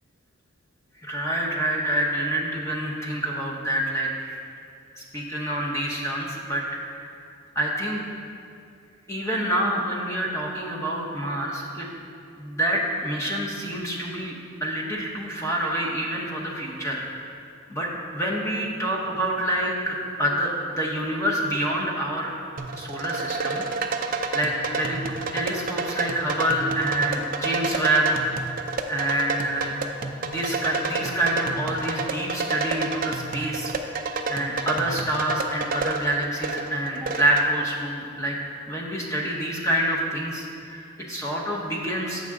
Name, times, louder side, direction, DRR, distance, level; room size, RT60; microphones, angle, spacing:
voice 1, 1.0-4.4 4.9-6.7 7.0-7.1 7.5-8.0 9.1-11.9 12.4-14.3 14.6-17.4 17.7-22.3 22.8-23.6 24.0-25.0 25.3-29.7 30.2-33.7 34.1-38.4 38.7-42.3, right 1 dB, 15° left, -2 dB, 0.8 m, -27 dB
sound 1, 22.6-37.5, right 3 dB, 40° right, 0.4 m, -30 dB
7.5 x 5.7 x 3.6 m, 2.5 s
head